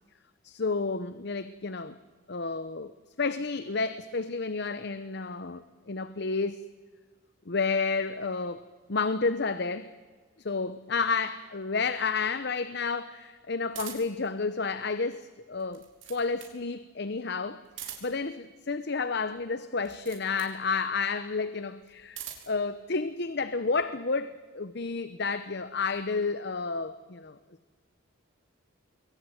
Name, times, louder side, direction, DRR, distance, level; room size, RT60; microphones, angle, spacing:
voice 1, 0.4-2.0 2.3-2.9 3.2-6.6 7.5-8.6 8.9-9.9 10.4-15.8 16.1-22.2 22.5-27.4, left 4 dB, 55° left, 13 dB, 0.8 m, -31 dB
sound 1, 13.7-14.3 15.5-16.6 17.6-18.3 19.8-20.6 21.8-22.6, right 10 dB, 70° right, 4.9 m, -43 dB
26.5 x 22.0 x 9.2 m, 1.5 s
head